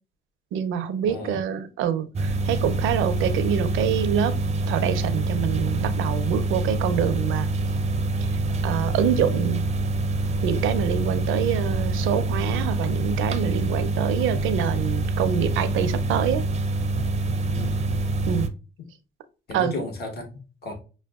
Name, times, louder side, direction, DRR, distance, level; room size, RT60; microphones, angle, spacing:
voice 1, 0.5-4.4 4.7-7.5 8.6-9.6 10.4-16.4 18.3-18.5 19.5-19.7, right 8 dB, 85° right, 0.5 m, -26 dB
sound 1, 2.2-18.5, right 2 dB, 35° right, 0.4 m, -25 dB
voice 2, 17.5-17.9 19.5-20.7, left 2 dB, 55° left, 1.2 m, -34 dB
6.1 x 2.2 x 2.3 m
cardioid pair, 90°, 20 cm